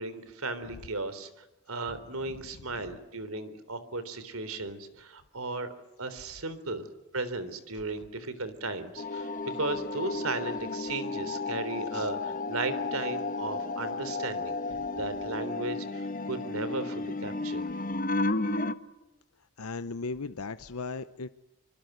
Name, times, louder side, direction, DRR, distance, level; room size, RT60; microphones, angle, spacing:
voice 1, 0.0-5.7 6.0-6.9 7.1-14.6 14.9-17.7, right 3 dB, 75° right, 13 dB, 3.6 m, -36 dB
sound 1, 9.0-18.7, left 3 dB, 40° left, 1.2 m, -33 dB
voice 2, 19.4-21.3, left 4 dB, 85° left, 12 dB, 0.9 m, -37 dB
25.5 x 25.0 x 8.0 m, 0.98 s
head